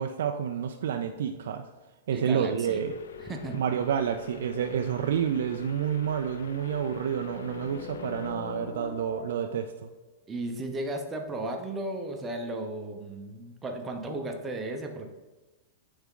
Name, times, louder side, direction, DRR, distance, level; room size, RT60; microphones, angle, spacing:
voice 1, 0.0-1.7 2.1-2.9 3.5-9.9, right 8 dB, 75° right, 5 dB, 0.4 m, -29 dB
voice 2, 2.1-2.8 3.2-3.6 10.3-15.1, right 2 dB, 15° right, 3 dB, 0.8 m, -35 dB
sound 1, 2.6-8.3, left 5 dB, 90° left, 0.5 m, -44 dB
sound 2, 6.5-9.7, left 7 dB, 35° left, 0.5 m, -43 dB
9.3 x 3.6 x 3.7 m, 1.2 s
supercardioid pair, 150°, 0 cm